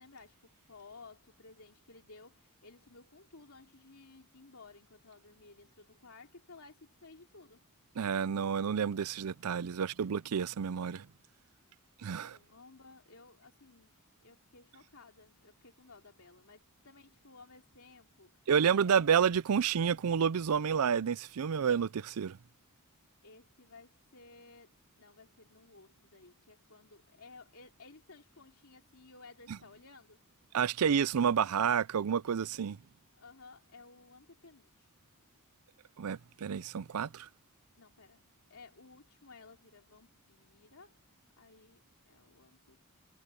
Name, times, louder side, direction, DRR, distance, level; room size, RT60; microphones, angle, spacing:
voice 1, 0.0-7.6 12.0-13.9 14.2-18.4 18.7-19.1 23.2-30.2 33.2-34.9 37.8-38.2 38.5-41.0 41.4-42.9, left 3 dB, 75° left, 3.1 m, -56 dB
voice 2, 8.0-11.1 12.0-12.4 18.5-22.4 30.5-32.8 36.0-37.3, right 7 dB, 80° right, 0.5 m, -29 dB
head